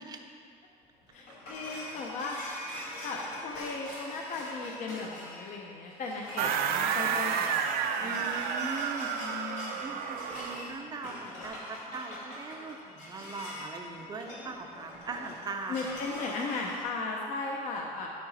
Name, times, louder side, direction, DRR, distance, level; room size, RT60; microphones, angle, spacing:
sound 1, 0.8-16.8, left 1 dB, 85° left, 2.3 m, -44 dB
voice 1, 1.1-2.5 3.0-7.5 8.0-8.4 9.2-10.0 15.7-18.1, left 3 dB, 50° left, 0 dB, 0.7 m, -37 dB
sound 2, 6.4-10.8, right 7 dB, 70° right, 0.5 m, -31 dB
voice 2, 8.0-15.9, right 3 dB, 25° right, 4 dB, 0.6 m, -41 dB
12.0 x 5.0 x 4.0 m, 2.2 s
cardioid pair, 165°, 16 cm